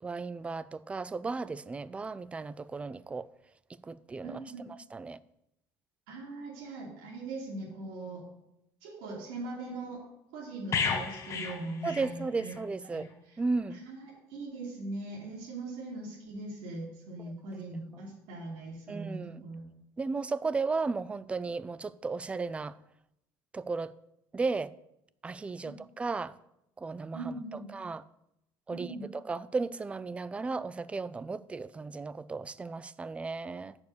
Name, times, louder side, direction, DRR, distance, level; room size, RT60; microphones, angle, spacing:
voice 1, 0.0-3.3 3.8-4.4 4.6-5.2 11.8-13.1 13.4-13.8 17.5-17.6 17.9-18.0 18.9-19.4 20.0-22.8 23.5-23.9 24.3-24.7 25.2-26.3 26.8-27.4 27.7-28.0 28.7-33.8, right 4 dB, 15° right, 0.4 m, -35 dB
voice 2, 4.2-4.7 6.1-8.2 8.8-10.0 10.3-12.5 12.9-13.0 13.7-19.6 25.6-25.7 27.1-27.7 28.7-29.0, right 2 dB, 90° right, 3.2 m, -41 dB
sound 1, 10.7-12.6 12.9-13.1, left 6 dB, 35° left, 1.2 m, -33 dB
8.1 x 7.1 x 6.9 m
cardioid pair, 135°, 9 cm